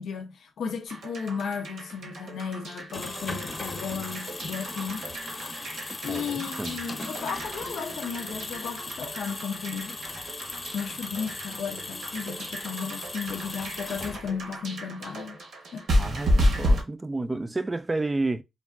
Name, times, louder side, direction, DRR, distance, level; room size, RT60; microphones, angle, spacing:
voice 1, 0.0-5.1 6.0-10.0 10.7-15.4 15.7-15.9, left 6 dB, 90° left, 0.4 m, -34 dB
sound 1, 0.9-16.8, equal, 85° right, 0.8 m, -32 dB
sound 2, 2.7-14.6, left 2 dB, 35° left, 0.7 m, -38 dB
voice 2, 6.1-6.8 16.0-18.4, right 2 dB, 25° right, 0.3 m, -31 dB
3.5 x 2.2 x 2.3 m
cardioid pair, 75°, 0 cm